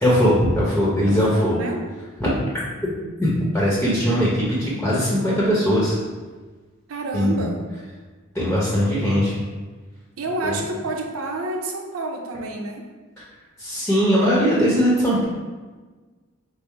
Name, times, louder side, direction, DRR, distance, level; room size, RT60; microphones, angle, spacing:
voice 1, 0.0-1.5 2.2-2.3 2.8-2.9 3.2-6.0 7.1-7.4 8.3-9.4 10.4-10.6 13.6-15.2, equal, 5° left, -6 dB, 0.8 m, -20 dB
voice 2, 1.1-1.8 6.9-7.6 10.2-12.9, right 2 dB, 85° right, 1 dB, 0.7 m, -29 dB
5.4 x 2.0 x 4.5 m, 1.3 s
head